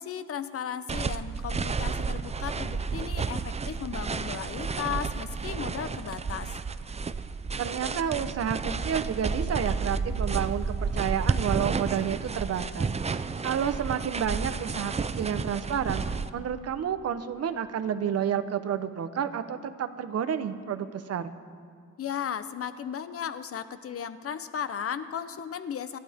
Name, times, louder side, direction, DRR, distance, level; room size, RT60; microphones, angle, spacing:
voice 1, 0.0-6.6 22.0-26.0, left 8 dB, 50° left, 12 dB, 0.9 m, -35 dB
sound 1, 0.9-16.3, right 4 dB, 20° right, 0.5 m, -31 dB
voice 2, 7.6-16.0 16.3-21.3, right 8 dB, 55° right, 9 dB, 1.1 m, -30 dB
30.0 x 11.5 x 3.7 m, 2.1 s
cardioid pair, 90°, 30 cm